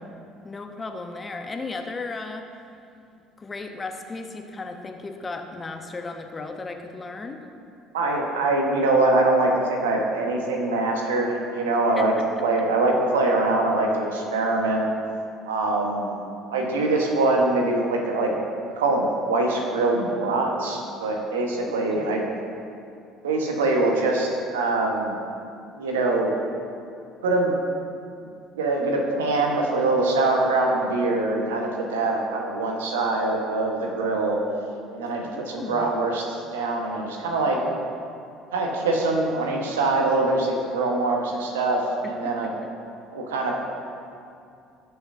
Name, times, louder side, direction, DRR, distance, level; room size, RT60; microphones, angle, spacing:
voice 1, 0.4-2.5 3.4-7.4 12.0-12.1 12.6-12.7 21.6-22.1 35.2-35.9 42.0-42.5, left 3 dB, 25° left, 5 dB, 0.9 m, -35 dB
voice 2, 7.9-12.1 12.4-14.9 15.5-16.2 16.5-18.3 18.7-22.2 23.2-25.2 25.7-26.4 27.2-27.6 28.6-34.4 34.9-37.6 38.5-42.5 43.1-43.6, right 2 dB, 75° right, 1 dB, 1.3 m, -23 dB
17.0 x 7.0 x 2.7 m, 2.5 s
figure-of-eight pair, 60°, 0 cm